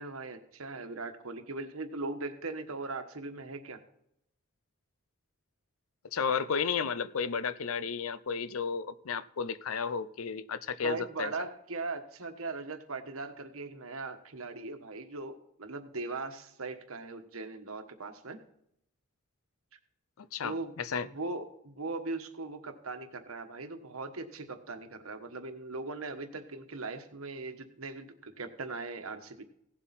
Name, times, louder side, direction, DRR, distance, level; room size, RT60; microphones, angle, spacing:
voice 1, 0.0-3.8 10.8-18.4 20.4-20.7 21.1-29.4, right 3 dB, 75° right, 1.3 m, -39 dB
voice 2, 6.1-11.3 20.2-21.1, left 6 dB, 75° left, 0.6 m, -33 dB
16.5 x 7.6 x 4.2 m
head